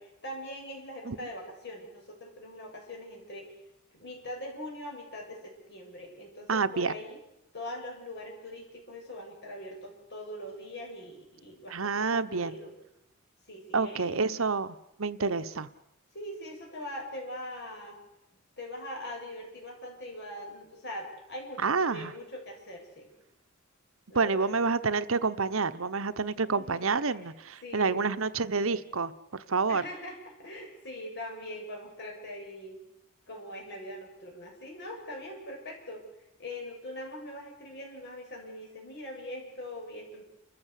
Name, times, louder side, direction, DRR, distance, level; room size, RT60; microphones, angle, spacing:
voice 1, 0.0-3.5 3.9-7.2 7.5-12.7 13.5-14.1 15.2-15.4 16.1-18.0 18.6-23.1 24.1-24.5 26.4-27.3 27.6-28.1 29.7-32.8 33.3-36.0 36.4-40.2, left 1 dB, 55° left, 0 dB, 7.7 m, -42 dB
voice 2, 6.5-6.9 11.7-12.5 13.7-15.7 21.6-22.1 24.1-29.8, right 4 dB, 75° right, 12 dB, 1.0 m, -28 dB
29.5 x 15.0 x 8.3 m, 0.85 s
head